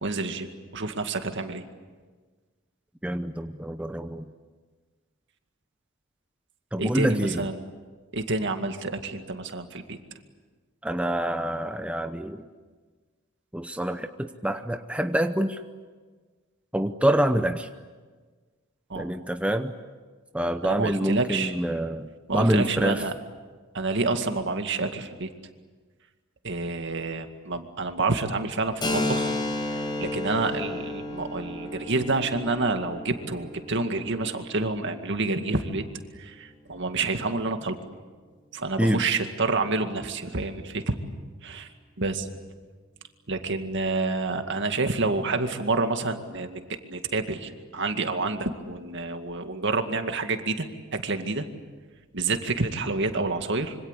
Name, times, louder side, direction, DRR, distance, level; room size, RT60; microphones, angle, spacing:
voice 1, 0.0-1.6 6.8-7.6 8.1-10.0 18.9-19.1 20.6-21.5 22.3-23.1 23.7-25.3 26.4-29.3 29.7-35.8 36.2-37.8 38.5-40.9 41.4-41.7 42.0-42.3 43.3-50.7 50.9-51.5 52.1-53.8, right 3 dB, 60° right, 6 dB, 2.1 m, -28 dB
voice 2, 3.0-4.2 6.7-7.5 10.8-12.4 13.5-15.6 16.7-17.7 18.9-19.7 20.3-23.0 38.8-39.0, right 1 dB, 5° right, 7 dB, 0.8 m, -26 dB
Keyboard (musical), 28.8-36.2, left 2 dB, 20° left, 5.2 m, -33 dB
26.5 x 25.0 x 8.4 m, 1.4 s
head